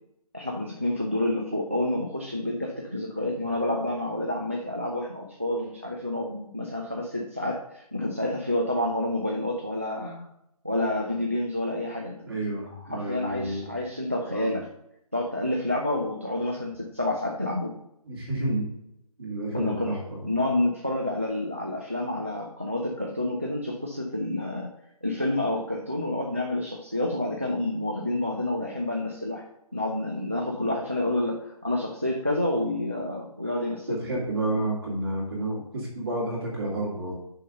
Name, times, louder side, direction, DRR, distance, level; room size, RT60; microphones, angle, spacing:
voice 1, 0.3-10.3 10.6-12.2 12.4-12.6 12.9-14.7 15.1-17.7 19.5-20.0 20.2-24.7 25.0-29.5 29.7-34.0, left 1 dB, 20° right, 1 dB, 0.4 m, -29 dB
voice 2, 12.2-13.7 14.3-14.5 18.0-18.7 19.2-20.2 33.9-37.2, right 1 dB, 40° right, -3 dB, 2.5 m, -30 dB
6.3 x 5.2 x 5.3 m, 0.81 s
hypercardioid pair, 175°, 19 cm